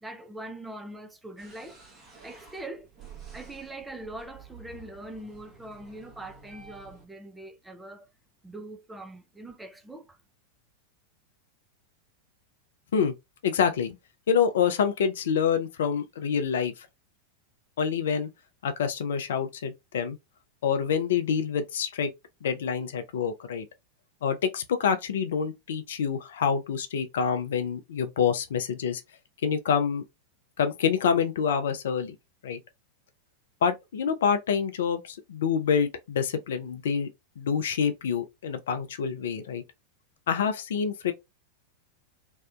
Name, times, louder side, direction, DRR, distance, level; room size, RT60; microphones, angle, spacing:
voice 1, 0.0-1.8 2.2-2.9 3.3-8.1 8.4-10.2, right 1 dB, 5° right, 0.4 m, -42 dB
sound 1, 1.4-7.1, right 5 dB, 20° right, 0.9 m, -50 dB
voice 2, 13.4-14.0 14.3-16.7 17.8-18.3 18.6-20.2 20.6-22.1 22.4-23.7 24.2-29.0 29.4-30.0 30.6-32.2 32.4-32.6 33.6-37.1 37.4-39.6 40.3-41.1, left 7 dB, 60° left, 0.4 m, -27 dB
2.6 x 2.1 x 2.2 m
figure-of-eight pair, 90°, 0 cm